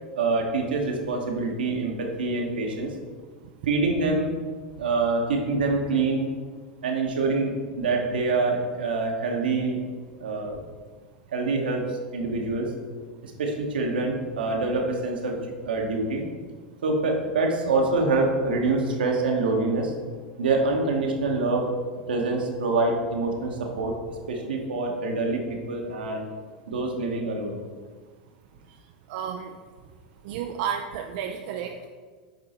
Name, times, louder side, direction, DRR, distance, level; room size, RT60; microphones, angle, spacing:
voice 1, 0.2-2.9 3.7-4.4 4.8-6.3 6.8-9.8 10.2-10.6 11.3-12.7 13.2-16.2 16.8-19.9 20.4-21.7 22.1-23.9 24.3-26.3 26.7-27.6, right 3 dB, 85° right, 1 dB, 1.2 m, -25 dB
voice 2, 29.1-29.5 30.2-31.9, right 8 dB, 60° right, 4 dB, 0.4 m, -32 dB
8.1 x 3.7 x 4.3 m, 1.5 s
hypercardioid pair, 95°, 5 cm